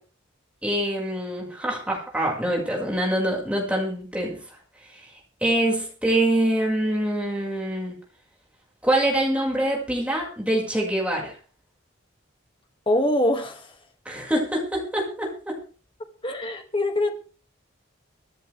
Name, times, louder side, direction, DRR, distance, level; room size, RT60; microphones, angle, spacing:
voice 1, 0.6-4.4 5.4-8.0 8.8-11.3 14.1-15.6, right 1 dB, 5° right, 5.5 m, -25 dB
voice 2, 12.9-13.7 16.2-17.1, left 1 dB, 25° left, 2.1 m, -23 dB
25.0 x 10.5 x 3.4 m
head